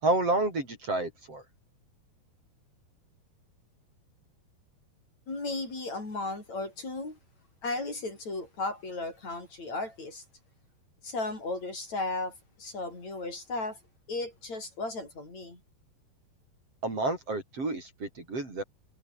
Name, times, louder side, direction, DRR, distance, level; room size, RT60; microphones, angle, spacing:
voice 1, 0.0-1.4 16.8-18.6, right 2 dB, 35° right, 6.5 m, -29 dB
voice 2, 5.3-7.2 7.6-10.2 11.0-13.8 14.1-15.6, left 2 dB, 40° left, 8.8 m, -35 dB
omnidirectional pair, 4.6 m